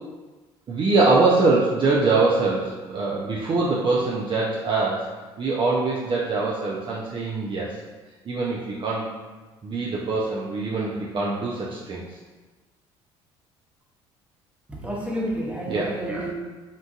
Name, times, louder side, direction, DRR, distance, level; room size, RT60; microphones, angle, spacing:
voice 1, 0.7-5.1 5.4-7.8 8.3-9.1 9.6-12.2 15.7-16.0, right 3 dB, 35° right, -5 dB, 0.5 m, -23 dB
voice 2, 14.7-16.3, equal, 10° right, -4 dB, 0.9 m, -30 dB
3.7 x 2.5 x 2.3 m, 1.3 s
hypercardioid pair, 60°, 14 cm